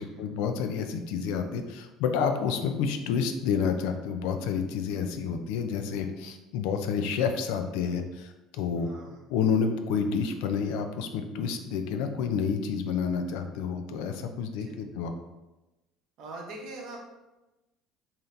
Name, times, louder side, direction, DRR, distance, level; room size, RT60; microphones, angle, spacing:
voice 1, 0.0-8.9 9.3-15.1, left 6 dB, 80° left, 6 dB, 0.4 m, -29 dB
voice 2, 8.8-9.2 14.5-14.8 16.2-17.0, right 2 dB, 55° right, -1 dB, 0.9 m, -43 dB
3.8 x 2.8 x 3.2 m, 1.0 s
cardioid pair, 165°, 0 cm